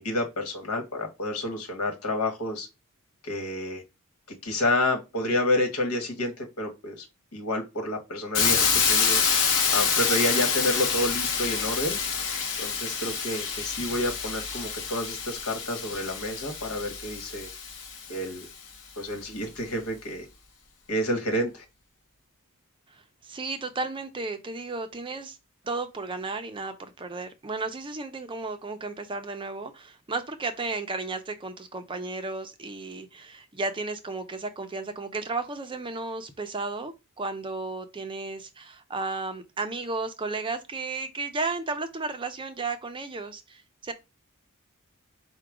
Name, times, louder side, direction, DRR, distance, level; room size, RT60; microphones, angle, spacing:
voice 1, 0.0-2.7 3.2-3.8 4.4-7.0 7.3-9.2 9.7-12.0 12.6-17.5 18.1-18.5 19.0-20.3 20.9-21.6, left 1 dB, 75° left, 1.3 m, -29 dB
Hiss, 8.3-18.2, left 6 dB, 60° left, 0.9 m, -27 dB
voice 2, 22.9-25.4 25.6-43.9, right 3 dB, 25° right, 0.5 m, -34 dB
4.8 x 2.2 x 4.8 m
head